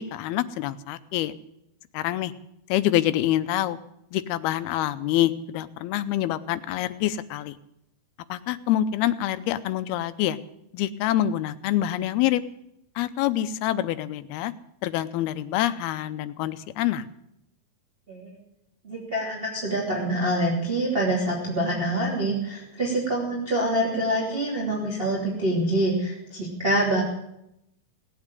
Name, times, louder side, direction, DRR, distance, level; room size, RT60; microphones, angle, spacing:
voice 1, 0.0-1.3 1.9-2.3 2.7-3.8 4.1-7.5 8.3-10.4 10.7-12.4 13.0-14.5 14.8-17.1, left 13 dB, 85° left, 13 dB, 2.7 m, -26 dB
voice 2, 18.8-27.0, right 1 dB, 15° right, -4 dB, 2.8 m, -26 dB
18.0 x 8.6 x 9.0 m, 0.80 s
omnidirectional pair, 4.4 m